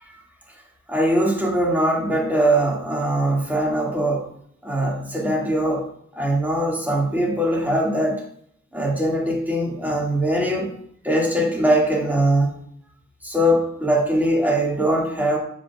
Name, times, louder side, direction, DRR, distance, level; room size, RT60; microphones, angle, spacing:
voice 1, 0.9-4.3 4.6-5.9 6.1-8.2 8.7-10.7 11.0-12.6 13.2-15.4, right 1 dB, 5° right, -2 dB, 2.0 m, -21 dB
7.6 x 5.3 x 2.4 m, 0.66 s
cardioid pair, 50°, 31 cm